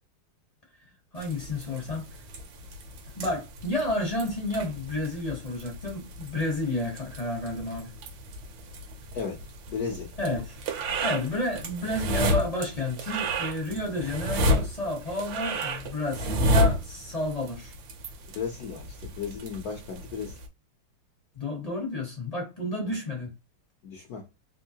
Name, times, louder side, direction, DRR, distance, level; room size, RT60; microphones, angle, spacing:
voice 1, 1.1-2.1 3.2-7.9 10.2-10.6 11.0-17.7 21.4-23.3, left 1 dB, 40° left, 0.5 m, -31 dB
sound 1, 1.2-20.5, equal, 70° right, 1.3 m, -32 dB
voice 2, 9.7-10.1 18.3-20.4 22.9-23.0 23.8-24.2, left 6 dB, 70° left, 0.9 m, -35 dB
3.6 x 2.6 x 2.8 m
omnidirectional pair, 2.4 m